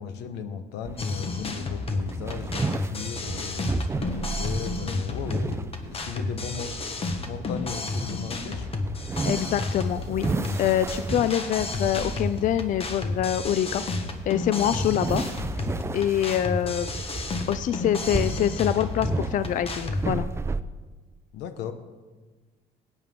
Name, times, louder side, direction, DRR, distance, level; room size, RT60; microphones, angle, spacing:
voice 1, 0.0-8.7 21.3-21.7, left 7 dB, 90° left, 9 dB, 1.0 m, -36 dB
sound 1, 0.8-20.6, right 3 dB, 15° right, 0.4 m, -34 dB
sound 2, 1.0-20.0, left 3 dB, 35° left, 1.3 m, -32 dB
voice 2, 9.2-10.2 10.6-13.8 14.3-15.2 15.9-16.9 17.5-20.3, left 10 dB, 50° left, 13 dB, 0.4 m, -25 dB
16.5 x 9.0 x 3.7 m, 1.3 s
cardioid pair, 110°, 17 cm